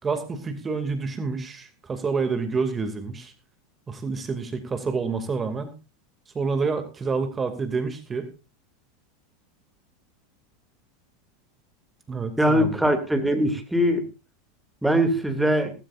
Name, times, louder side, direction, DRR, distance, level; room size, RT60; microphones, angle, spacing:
voice 1, 0.0-3.3 3.9-5.7 6.3-8.3 12.1-12.7, right 4 dB, 20° right, 8 dB, 2.6 m, -28 dB
voice 2, 12.4-14.0 14.8-15.7, equal, 5° right, 6 dB, 2.7 m, -21 dB
18.0 x 15.5 x 2.6 m, 0.31 s
figure-of-eight pair, 85°, 0 cm